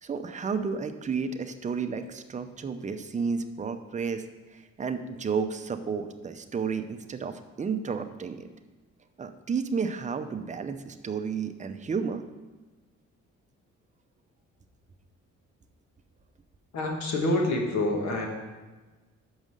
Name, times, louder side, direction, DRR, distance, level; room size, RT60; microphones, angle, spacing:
voice 1, 0.0-4.2 4.5-8.5 9.2-12.2, right 5 dB, 25° right, 7 dB, 0.6 m, -32 dB
voice 2, 16.7-18.3, left 1 dB, 65° left, 1 dB, 1.6 m, -27 dB
6.3 x 5.3 x 6.4 m, 1.2 s
cardioid pair, 90°, 30 cm